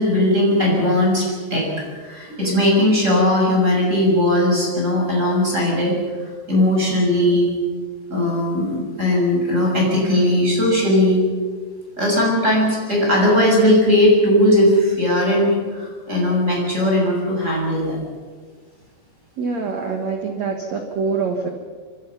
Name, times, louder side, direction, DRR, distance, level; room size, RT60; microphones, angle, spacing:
voice 1, 0.0-1.7 2.0-6.0 6.5-7.5 8.1-11.2 12.0-18.0, left 1 dB, 15° right, -2 dB, 6.7 m, -18 dB
voice 2, 19.4-21.5, right 5 dB, 80° right, 4 dB, 1.5 m, -25 dB
25.5 x 25.0 x 5.9 m, 1.6 s
omnidirectional pair, 5.8 m